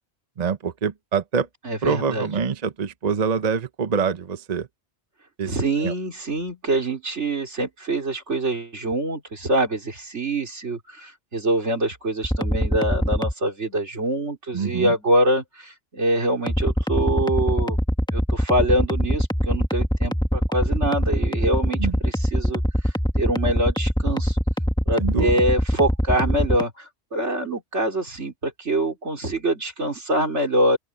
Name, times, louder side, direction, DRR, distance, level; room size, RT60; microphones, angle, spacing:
voice 1, 0.4-1.5 1.8-4.7 5.4-5.5 5.8-5.9 14.5-14.9 21.8-21.9 25.0-25.3, right 6 dB, 40° right, 0.8 m, -25 dB
voice 2, 1.6-2.3 5.5-17.8 18.1-24.4 24.9-30.8, right 1 dB, 75° right, 4.2 m, -25 dB
sound 1, 12.2-13.3 16.5-26.6, equal, 5° left, 1.6 m, -22 dB
open air
omnidirectional pair, 1.2 m